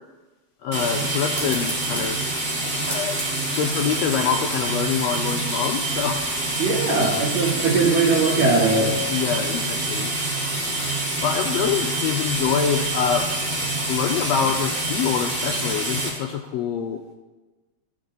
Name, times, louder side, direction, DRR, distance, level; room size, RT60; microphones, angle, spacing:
voice 1, 0.6-2.2 2.9-3.2 3.5-6.3 9.1-10.1 11.2-13.3 13.9-17.1, left 8 dB, 75° left, 3 dB, 1.6 m, -25 dB
sound 1, 0.7-16.1, right 2 dB, 25° right, 1.9 m, -26 dB
sound 2, 1.3-6.4, equal, ahead, 2.2 m, -39 dB
voice 2, 6.6-9.0, right 3 dB, 70° right, -7 dB, 3.0 m, -20 dB
15.5 x 6.1 x 4.0 m, 1.2 s
omnidirectional pair, 3.4 m